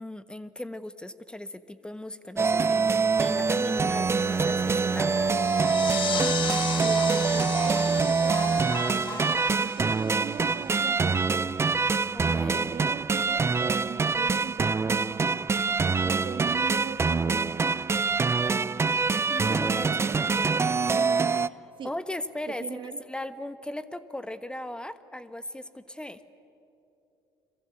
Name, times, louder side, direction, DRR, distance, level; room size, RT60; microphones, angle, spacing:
voice 1, 0.0-5.1 12.1-12.7 19.3-19.9 20.1-20.6 21.5-26.2, left 1 dB, 10° left, 12 dB, 1.3 m, -38 dB
sound 1, 2.4-21.5, right 4 dB, 25° right, 0.6 m, -25 dB
sound 2, 5.1-17.7 18.3-18.4 18.7-18.8 19.0-19.1, left 2 dB, 25° left, 2.7 m, -44 dB
sound 3, 5.4-10.7, left 9 dB, 50° left, 1.1 m, -36 dB
voice 2, 6.8-11.4 12.2-15.4 16.0-17.7 19.5-21.2 21.8-21.9 22.5-23.0, right 8 dB, 50° right, 12 dB, 1.2 m, -40 dB
30.0 x 23.0 x 8.4 m, 2.8 s
hypercardioid pair, 65°, 11 cm